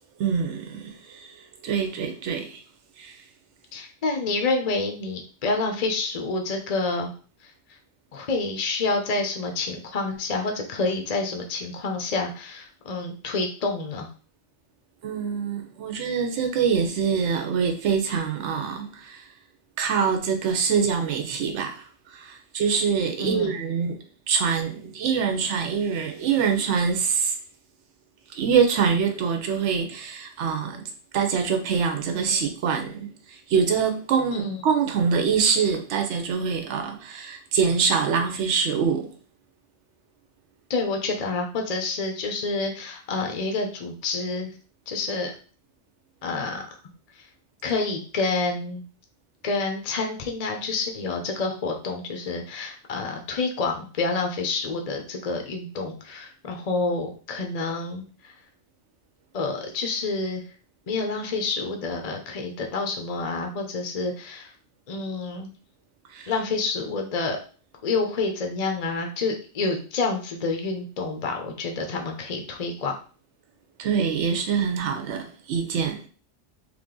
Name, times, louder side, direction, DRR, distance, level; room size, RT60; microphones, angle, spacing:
voice 1, 0.2-1.4 1.6-2.6 3.0-3.2 15.0-19.2 19.8-24.0 24.3-27.3 28.3-30.8 31.1-39.1 66.1-66.3 73.8-76.1, right 6 dB, 85° right, 0.9 m, -25 dB
voice 2, 3.7-7.1 7.4-7.5 8.1-14.1 23.2-23.6 34.3-34.7 40.7-44.5 44.9-45.3 46.2-46.6 47.2-47.3 47.6-48.8 49.4-58.3 59.3-60.4 60.9-64.5 64.9-65.5 66.3-67.4 67.8-72.9, left 3 dB, 45° left, 0.6 m, -28 dB
3.3 x 2.5 x 3.7 m
omnidirectional pair, 1.2 m